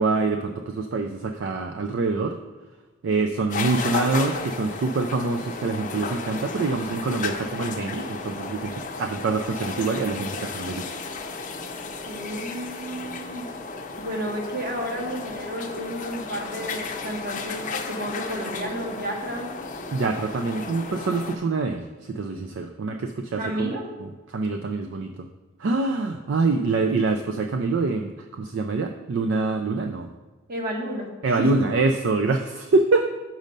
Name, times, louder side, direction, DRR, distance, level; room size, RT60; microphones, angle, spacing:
voice 1, 0.0-2.4 3.0-10.9 19.9-25.3 25.6-30.1 31.2-33.1, right 3 dB, 60° right, 6 dB, 0.4 m, -25 dB
sound 1, 3.5-21.4, left 4 dB, 40° left, 0.6 m, -33 dB
voice 2, 12.1-13.5 14.0-19.5 23.3-23.9 30.5-31.1 31.4-31.5, equal, 45° right, 1 dB, 1.2 m, -31 dB
6.2 x 5.4 x 5.2 m, 1.3 s
head